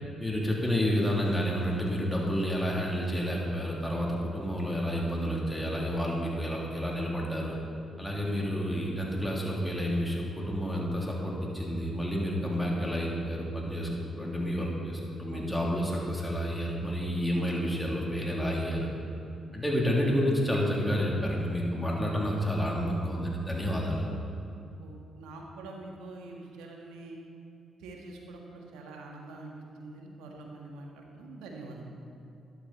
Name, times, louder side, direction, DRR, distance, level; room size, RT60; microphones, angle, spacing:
voice 1, 0.2-7.6 8.0-18.9 19.5-24.1, equal, 10° left, -3 dB, 3.4 m, -30 dB
voice 2, 24.8-27.2 27.8-31.8, right 2 dB, 85° right, 0 dB, 1.7 m, -45 dB
12.5 x 11.5 x 4.3 m, 2.6 s
supercardioid pair, 50°, 0 cm